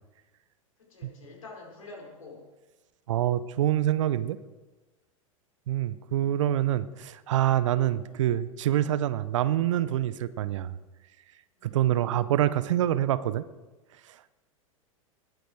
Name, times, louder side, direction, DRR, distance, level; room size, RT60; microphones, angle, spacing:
voice 1, 0.8-2.5 8.0-8.2 11.6-11.9, left 3 dB, 70° left, -1 dB, 4.6 m, -47 dB
voice 2, 3.1-4.4 5.7-10.8 11.6-13.4, right 12 dB, 60° right, 15 dB, 0.7 m, -26 dB
20.0 x 9.3 x 4.5 m, 1.1 s
figure-of-eight pair, 90°, 18 cm